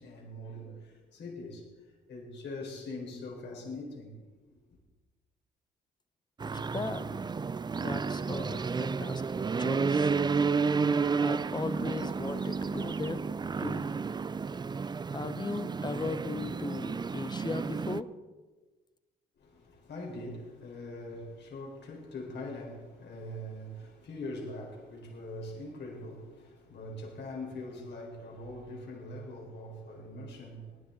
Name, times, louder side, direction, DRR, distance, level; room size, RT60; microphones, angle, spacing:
voice 1, 0.0-1.7 2.1-4.2 19.4-30.8, left 1 dB, 60° left, 4.4 m, -42 dB
voice 2, 6.4-7.2 7.8-9.2 9.6-10.2 11.2-13.2 13.6-13.8 15.1-18.1, left 3 dB, 20° left, 1.0 m, -37 dB
sound 1, 6.4-18.0, right 5 dB, 20° right, 0.4 m, -31 dB
19.0 x 10.5 x 3.9 m
supercardioid pair, 60°, 20 cm